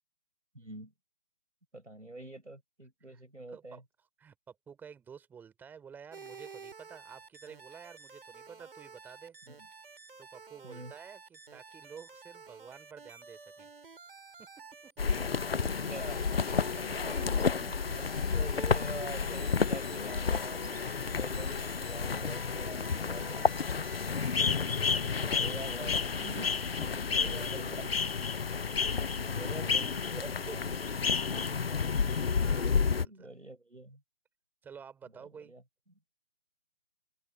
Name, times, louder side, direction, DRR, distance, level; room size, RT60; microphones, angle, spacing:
voice 1, 0.5-0.9 1.7-3.8 9.5-9.7 10.6-10.9 15.6-16.4 16.8-23.7 25.1-27.9 29.2-30.9 31.3-32.1 33.0-34.0 35.1-35.6, right 2 dB, 85° right, 5.6 m, -46 dB
voice 2, 4.2-9.4 10.2-13.7 14.4-14.9 16.6-16.8 24.1-24.3 26.8-26.9 27.2-27.8 29.0-29.2 31.3-31.9 32.4-33.3 34.6-35.5, right 7 dB, 5° right, 3.5 m, -51 dB
sound 1, 6.1-24.5, right 4 dB, 50° right, 5.8 m, -51 dB
sound 2, 15.0-33.1, left 5 dB, 55° left, 0.8 m, -31 dB
open air
figure-of-eight pair, 150°, 36 cm